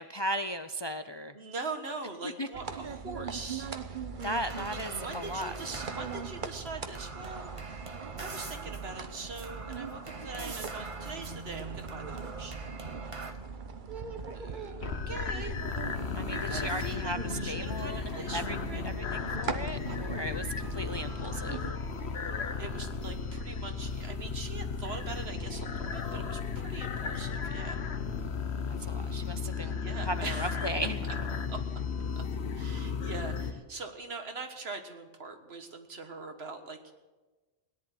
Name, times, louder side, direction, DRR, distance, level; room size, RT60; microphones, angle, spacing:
voice 1, 0.0-1.3 2.4-2.5 4.2-5.6 16.1-17.2 17.5-18.6 18.8-21.6 28.8-29.8 30.0-31.0, equal, 35° left, 9 dB, 0.4 m, -36 dB
voice 2, 1.3-3.7 4.5-7.8 8.2-12.6 14.3-15.6 16.2-18.8 22.6-27.8 29.8-30.7 31.5-31.6 32.5-36.9, right 3 dB, 75° right, 6 dB, 1.8 m, -42 dB
sound 1, 2.5-21.7, right 5 dB, 55° right, 1.1 m, -41 dB
sound 2, 4.2-13.3, right 3 dB, 30° right, 1.1 m, -44 dB
sound 3, 14.8-33.5, left 5 dB, 85° left, 1.3 m, -35 dB
17.5 x 10.5 x 7.7 m, 1.2 s
omnidirectional pair, 1.1 m